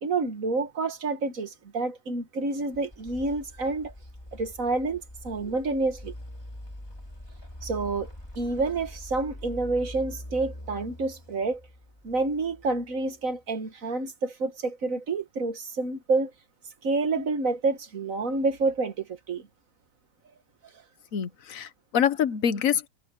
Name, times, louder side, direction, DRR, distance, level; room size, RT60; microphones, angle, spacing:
voice 1, 0.0-3.9 4.3-6.1 7.6-8.1 8.4-11.6 12.0-16.3 16.8-19.5, right 3 dB, 60° right, 1.9 m, -28 dB
sound 1, 2.5-13.3, left 1 dB, 15° left, 2.4 m, -44 dB
voice 2, 21.1-22.9, left 8 dB, 60° left, 1.4 m, -26 dB
omnidirectional pair, 1.6 m